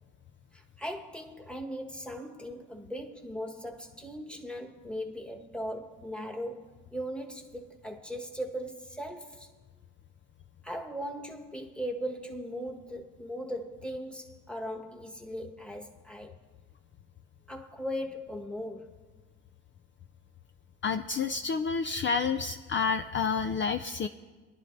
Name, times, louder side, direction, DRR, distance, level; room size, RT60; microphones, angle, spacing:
voice 1, 0.5-9.5 10.6-16.3 17.5-18.9, equal, 5° left, 1.4 m, -38 dB
voice 2, 20.8-24.1, left 5 dB, 40° left, 0.4 m, -29 dB
22.5 x 11.0 x 2.6 m
cardioid pair, 90°, 30 cm